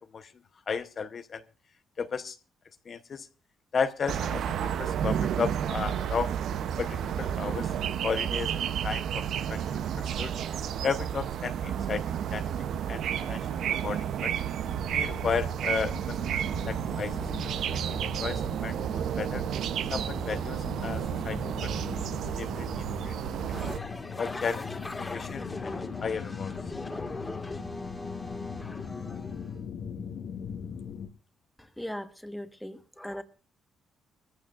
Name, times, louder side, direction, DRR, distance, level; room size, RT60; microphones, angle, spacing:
voice 1, 0.7-1.4 2.0-2.3 2.9-3.3 3.7-6.3 6.8-7.7 8.0-8.5 8.8-9.2 9.5-10.3 10.8-12.1 12.3-12.5 12.9-14.3 14.9-17.1 17.7-19.4 19.9-21.7 22.4-23.7 24.2-24.7 25.0-25.7 26.0-26.5, left 6 dB, 45° left, 8 dB, 0.8 m, -34 dB
sound 1, 4.1-23.8, right 9 dB, 70° right, 0.6 m, -31 dB
sound 2, 14.6-31.1, left 6 dB, 75° left, 1.7 m, -41 dB
sound 3, 23.5-29.6, left 2 dB, 20° left, 1.7 m, -39 dB
voice 2, 31.6-33.2, equal, 5° left, 8 dB, 1.3 m, -39 dB
22.5 x 15.0 x 2.5 m, 0.34 s
cardioid pair, 105°, 0 cm